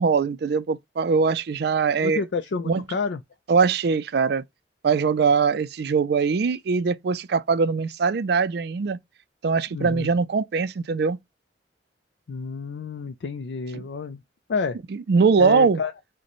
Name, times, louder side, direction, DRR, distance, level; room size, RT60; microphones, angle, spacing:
voice 1, 0.0-2.2 2.7-2.8 3.5-4.4 4.8-9.0 9.4-11.2 13.7-13.8 14.9-15.8, right 5 dB, 60° right, 0.4 m, -22 dB
voice 2, 2.0-3.2 9.7-10.1 12.3-14.2 14.5-14.8 15.4-15.9, left 4 dB, 65° left, 0.4 m, -29 dB
6.4 x 2.1 x 2.9 m
head